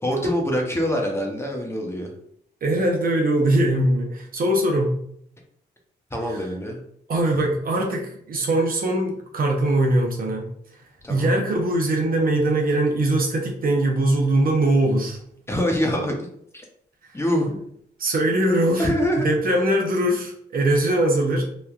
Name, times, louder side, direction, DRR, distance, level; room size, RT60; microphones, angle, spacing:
voice 1, 0.0-2.1 6.1-6.8 11.0-11.3 15.5-16.3 17.1-17.6 18.8-19.3, equal, 15° left, 0 dB, 0.8 m, -24 dB
voice 2, 2.6-5.0 6.3-6.4 7.1-10.5 11.1-15.2 18.0-19.0 19.2-21.4, right 1 dB, 55° right, 1 dB, 0.7 m, -21 dB
3.0 x 2.3 x 2.4 m, 0.67 s
cardioid pair, 65°, 18 cm